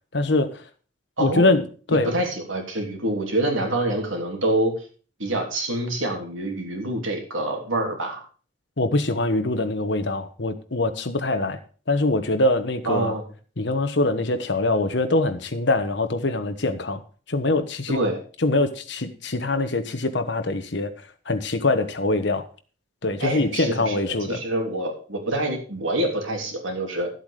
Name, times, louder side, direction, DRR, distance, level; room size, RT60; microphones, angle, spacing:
voice 1, 0.1-0.6 1.2-2.1 8.8-11.6 11.9-13.1 13.6-17.0 17.3-18.0 18.4-20.9 21.3-22.5 23.0-24.4, left 2 dB, 65° left, 8 dB, 1.2 m, -23 dB
voice 2, 1.9-4.9 5.2-8.2 12.8-13.2 17.9-18.2 23.2-27.1, right 1 dB, 85° right, 2 dB, 3.2 m, -26 dB
12.0 x 8.1 x 5.0 m, 0.39 s
head